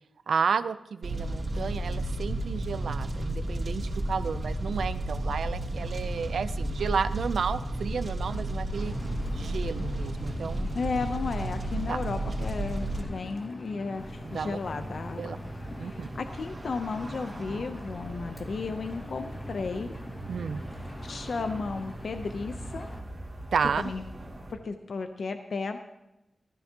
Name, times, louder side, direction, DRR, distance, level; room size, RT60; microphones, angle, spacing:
voice 1, 0.3-8.9 9.3-10.7 11.9-12.0 14.2-14.6 15.2-15.4 15.8-16.1 20.3-20.6 23.5-23.8, right 6 dB, 90° right, 13 dB, 0.4 m, -32 dB
Fire, 1.0-13.0, right 1 dB, 50° right, 2.8 m, -32 dB
Engine, 8.7-23.0, left 1 dB, 35° left, 1.2 m, -43 dB
voice 2, 10.7-15.3 15.8-20.0 21.0-22.9 23.8-24.0 24.5-25.8, left 4 dB, 70° left, 7 dB, 0.6 m, -34 dB
sound 1, 14.0-24.5, right 1 dB, 25° right, 2.1 m, -42 dB
15.0 x 13.5 x 2.9 m, 0.94 s
wide cardioid pair, 90°, 0 cm